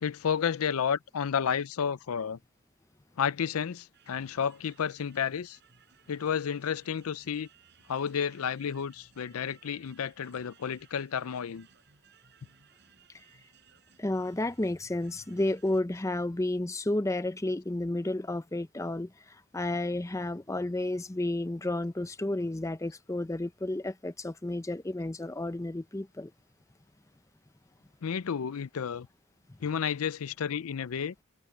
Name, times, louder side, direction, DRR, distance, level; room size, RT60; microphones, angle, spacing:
voice 1, 0.0-2.4 3.2-5.6 6.1-7.5 7.9-11.7 28.0-29.1 29.6-31.1, left 7 dB, 85° left, 0.5 m, -31 dB
sound 1, 3.9-15.8, right 6 dB, 50° right, 6.2 m, -62 dB
voice 2, 14.0-19.1 19.5-26.3, left 1 dB, 15° left, 0.5 m, -31 dB
head